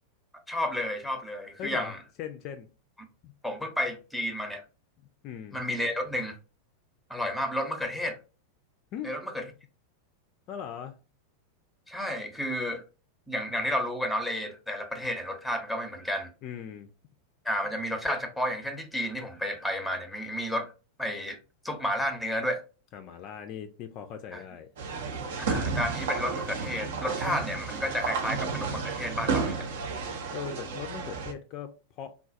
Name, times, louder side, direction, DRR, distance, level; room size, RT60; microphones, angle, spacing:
voice 1, 0.5-2.0 3.4-4.6 5.5-6.4 7.1-8.2 9.0-9.5 11.9-12.8 13.3-16.3 17.4-20.7 21.0-21.4 21.6-22.6 24.3-24.4 25.5-29.7, equal, ahead, 0.7 m, -31 dB
voice 2, 1.6-2.7 3.2-3.3 5.2-5.6 8.9-9.1 10.5-11.0 16.4-16.9 22.9-24.7 30.3-32.1, left 9 dB, 40° left, 0.3 m, -39 dB
sound 1, 24.8-31.3, right 5 dB, 55° right, 0.6 m, -32 dB
3.6 x 2.3 x 2.5 m
figure-of-eight pair, 90°, 0 cm